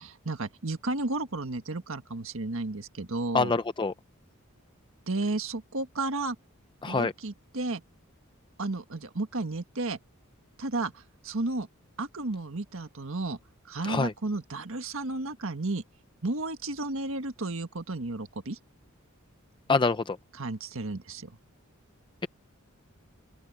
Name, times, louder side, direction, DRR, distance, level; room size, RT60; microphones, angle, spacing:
voice 1, 0.0-3.5 5.1-6.4 6.9-7.8 8.6-10.0 10.6-11.7 12.0-13.4 13.7-15.8 16.2-18.6 20.3-21.3, right 2 dB, 70° right, 1.6 m, -33 dB
voice 2, 3.3-3.9 6.8-7.1 13.8-14.1 19.7-20.2, left 4 dB, 25° left, 0.5 m, -25 dB
open air
head